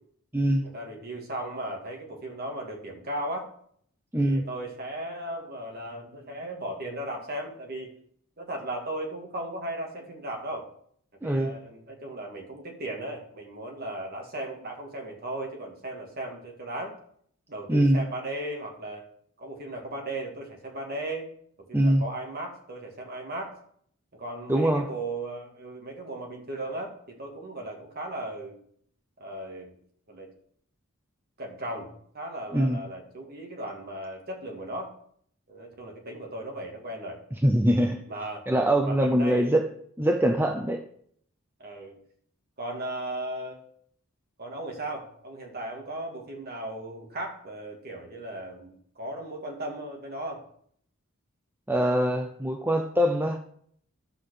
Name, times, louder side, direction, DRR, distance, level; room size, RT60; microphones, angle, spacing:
voice 1, 0.6-3.5 4.2-7.9 8.4-10.7 11.2-17.0 17.5-19.1 19.4-21.3 21.7-23.6 24.1-28.6 29.2-29.7 30.1-30.3 31.4-34.9 35.5-37.2 38.1-38.4 38.8-39.5 41.6-41.9 42.6-43.6 44.4-50.4, right 1 dB, 45° right, 1 dB, 2.5 m, -36 dB
voice 2, 4.1-4.4 11.2-11.5 17.7-18.0 21.7-22.0 24.5-24.9 32.5-32.8 37.4-38.0 38.5-39.6 40.0-40.8 51.7-53.4, right 1 dB, 10° right, 5 dB, 0.6 m, -23 dB
11.5 x 5.7 x 6.7 m, 0.63 s
head